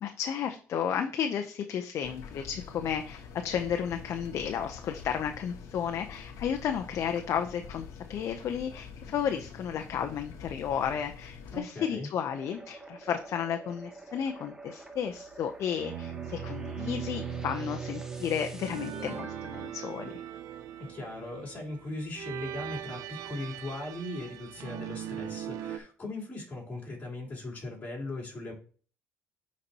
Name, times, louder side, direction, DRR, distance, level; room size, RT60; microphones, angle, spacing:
voice 1, 0.0-20.1, left 8 dB, 60° left, 6 dB, 0.5 m, -33 dB
sound 1, 2.0-11.6, left 6 dB, 75° left, 1.0 m, -46 dB
voice 2, 11.5-12.1 20.8-28.5, left 2 dB, 30° left, -3 dB, 3.4 m, -39 dB
sound 2, 12.3-21.0, right 2 dB, 10° right, 0.9 m, -48 dB
sound 3, 15.7-25.8, right 8 dB, 75° right, 0.5 m, -39 dB
9.7 x 4.2 x 2.8 m, 0.43 s
cardioid pair, 105°, 6 cm